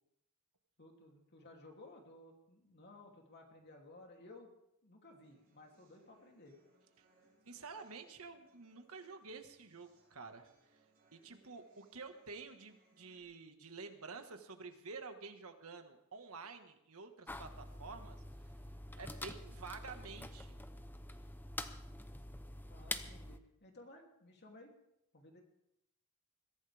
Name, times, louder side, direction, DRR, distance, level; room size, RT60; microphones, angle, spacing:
voice 1, 0.8-4.5 4.8-6.6 22.7-24.7 25.1-25.4, left 2 dB, 50° left, 1 dB, 3.0 m, -57 dB
sound 1, 5.2-13.2, right 2 dB, 40° right, 6.6 m, -72 dB
voice 2, 7.4-10.5 11.1-18.2 19.0-20.6, right 4 dB, 70° right, 6 dB, 1.7 m, -50 dB
sound 2, 17.3-23.4, left 1 dB, 10° left, 0.7 m, -46 dB
22.0 x 15.0 x 3.5 m, 0.81 s
head